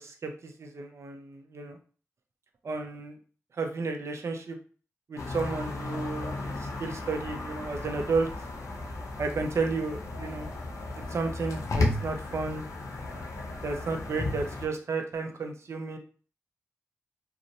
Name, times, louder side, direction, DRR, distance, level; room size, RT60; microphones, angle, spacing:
voice 1, 0.0-1.8 2.6-3.2 3.6-4.6 5.1-8.3 9.2-10.5 10.9-12.6 13.6-16.0, right 4 dB, 55° right, 5 dB, 0.5 m, -32 dB
sound 1, 5.2-14.7, left 2 dB, 70° left, 0.6 m, -34 dB
2.7 x 2.0 x 2.5 m, 0.39 s
supercardioid pair, 40°, 6 cm